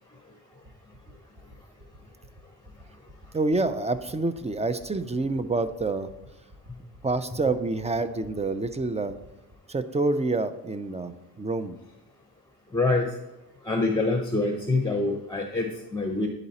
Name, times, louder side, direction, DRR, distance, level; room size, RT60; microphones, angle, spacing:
sound 1, 0.6-9.5, equal, 35° right, 1.3 m, -50 dB
voice 1, 3.3-6.1 7.0-9.1 9.7-11.8, right 3 dB, 15° right, 11 dB, 0.5 m, -27 dB
voice 2, 12.7-13.0 13.6-16.3, left 2 dB, 10° left, 3 dB, 0.8 m, -25 dB
9.8 x 4.0 x 4.2 m, 0.99 s
cardioid pair, 80°, 41 cm